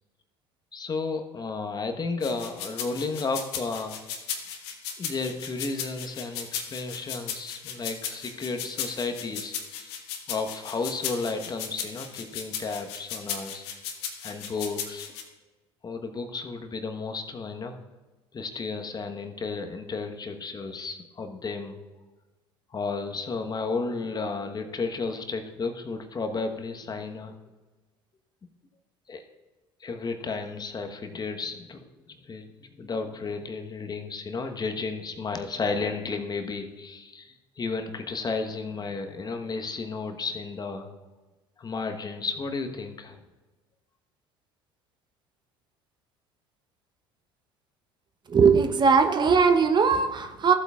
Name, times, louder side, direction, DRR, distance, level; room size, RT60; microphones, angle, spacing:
voice 1, 0.7-4.0 5.0-10.0 10.3-13.6 14.2-15.1 15.8-17.7 18.3-21.8 22.7-27.3 29.1-29.2 29.8-40.9 41.6-43.2, left 4 dB, 30° left, 6 dB, 1.1 m, -33 dB
sound 1, 2.2-15.2, left 8 dB, 75° left, 1.3 m, -36 dB
voice 2, 48.3-50.5, right 5 dB, 35° right, 7 dB, 0.8 m, -20 dB
14.5 x 8.0 x 2.4 m, 1.2 s
hypercardioid pair, 65°, 14 cm